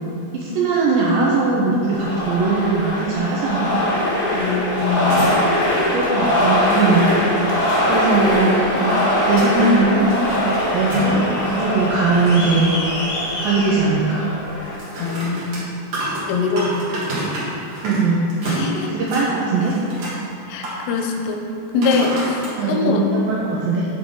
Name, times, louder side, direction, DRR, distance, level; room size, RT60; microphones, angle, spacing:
voice 1, 0.3-3.8 5.9-7.1 7.9-9.0 9.2-10.1 10.7-12.8 13.4-14.2 17.8-18.2 18.9-19.8 22.6-23.9, right 3 dB, 85° right, -5 dB, 2.1 m, -19 dB
sound 1, 1.9-14.7, left 1 dB, 65° left, 3.1 m, -21 dB
voice 2, 4.3-5.3 15.0-15.6 16.3-16.7 18.5-18.9 20.5-21.4 21.7-23.0, left 4 dB, 85° left, 3 dB, 2.8 m, -22 dB
sound 2, 4.7-5.6 5.9-6.0 6.7-7.9 8.6-9.6 10.0-11.3 11.7-12.7 14.6-18.0 18.3-19.3 19.6-20.2 20.6-21.0 21.8-22.5 23.2-23.3, right 1 dB, 55° right, 2.0 m, -30 dB
8.2 x 5.2 x 3.8 m, 2.7 s
omnidirectional pair, 4.8 m